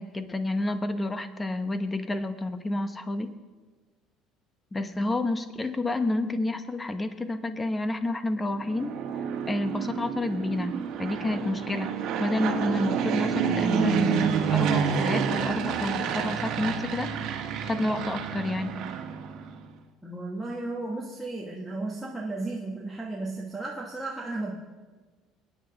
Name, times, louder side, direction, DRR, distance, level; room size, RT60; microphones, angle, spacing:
voice 1, 0.0-3.3 4.7-8.9 9.5-11.9 12.2-17.1 17.6-18.9, left 2 dB, 15° left, 9 dB, 0.8 m, -29 dB
Fixed-wing aircraft airplane, 8.6-19.7, right 7 dB, 55° right, 1.6 m, -29 dB
voice 2, 20.0-24.5, right 2 dB, 5° right, -4 dB, 1.3 m, -34 dB
28.5 x 9.7 x 3.9 m, 1.4 s
cardioid pair, 160°, 0 cm